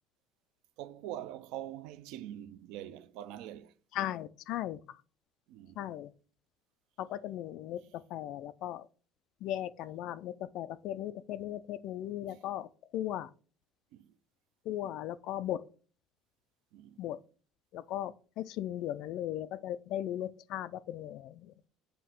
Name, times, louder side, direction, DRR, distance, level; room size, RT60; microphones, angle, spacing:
voice 1, 0.8-3.7 5.5-6.0 7.8-8.0 12.2-12.5 13.9-14.1 14.8-14.9 16.7-17.2, right 12 dB, 70° right, 0.5 m, -45 dB
voice 2, 3.9-4.8 5.8-6.1 7.0-8.8 9.4-12.7 12.9-13.3 14.7-15.7 17.0-17.2 17.7-21.5, left 12 dB, 50° left, 0.3 m, -37 dB
7.8 x 2.8 x 5.7 m
cardioid pair, 175°, 0 cm